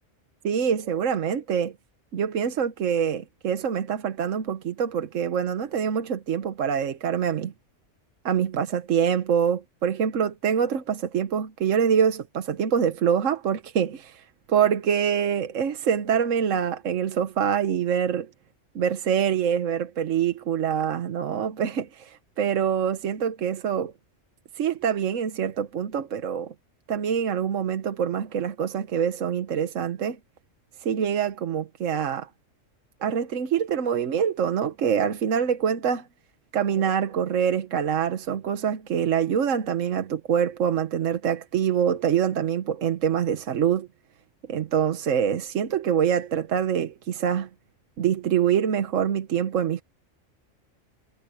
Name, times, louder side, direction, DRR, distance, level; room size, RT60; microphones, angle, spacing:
voice 1, 0.4-1.7 2.1-7.5 8.2-14.2 14.5-18.3 18.7-23.9 24.6-26.5 26.9-30.2 30.8-32.3 33.0-36.1 36.5-43.9 44.5-47.5 48.0-49.8, right 8 dB, 80° right, 1.3 m, -25 dB
omnidirectional pair, 1.3 m